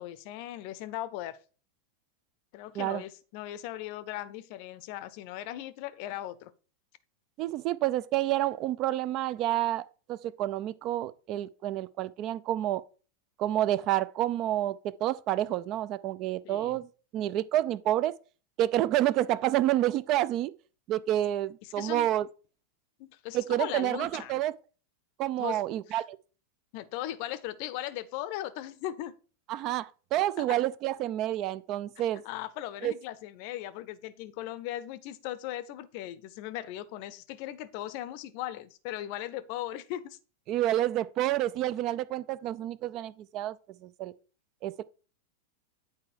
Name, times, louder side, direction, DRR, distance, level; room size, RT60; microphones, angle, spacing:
voice 1, 0.0-1.4 2.5-6.5 16.4-16.8 21.6-22.1 23.0-24.4 25.4-25.6 25.9-26.0 26.7-29.2 30.4-30.6 32.2-40.2, left 13 dB, 45° left, 0.6 m, -38 dB
voice 2, 7.4-12.8 13.4-16.9 17.1-18.2 18.6-20.5 20.9-22.3 23.3-24.5 25.2-26.2 29.5-32.2 32.8-32.9 40.5-43.6 43.8-44.1 44.6-44.8, right 13 dB, 40° right, 0.4 m, -29 dB
8.5 x 4.7 x 4.6 m
figure-of-eight pair, 90°, 0 cm